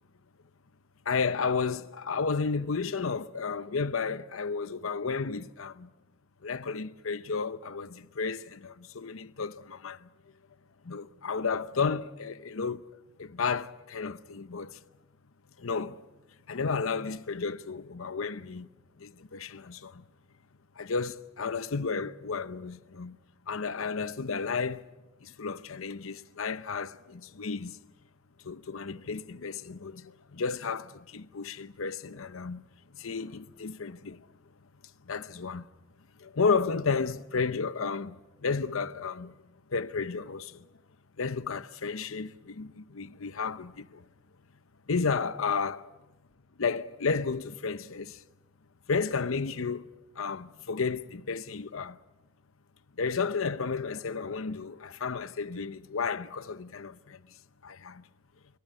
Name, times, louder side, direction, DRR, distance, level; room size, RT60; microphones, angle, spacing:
voice 1, 1.1-5.9 6.4-10.1 10.8-12.8 13.2-14.8 15.6-16.0 16.5-18.7 19.0-20.0 20.8-23.2 23.5-24.9 25.2-27.8 28.4-32.6 32.9-34.3 35.0-35.7 36.2-39.3 39.7-40.7 41.2-44.1 44.9-46.0 46.6-48.2 48.9-52.0 53.0-57.3 57.6-58.0, left 5 dB, 80° left, 0.8 m, -32 dB
25.5 x 25.0 x 5.5 m
head